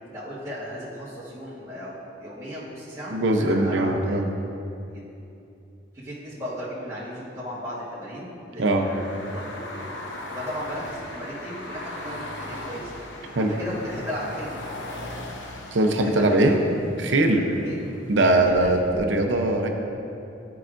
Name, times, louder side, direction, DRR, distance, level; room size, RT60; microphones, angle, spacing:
voice 1, 0.1-4.2 4.9-5.0 5.9-9.8 10.3-12.9 13.4-14.8 16.0-16.6 17.6-17.8 18.6-18.7, equal, 15° right, -11 dB, 1.4 m, -36 dB
voice 2, 3.1-4.3 8.6-8.8 13.4-13.5 15.7-16.5 17.0-17.4 18.1-19.7, right 2 dB, 75° right, 3 dB, 0.7 m, -21 dB
sound 1, 8.8-19.0, left 1 dB, 75° left, 0.8 m, -39 dB
13.0 x 4.8 x 2.5 m, 2.7 s
head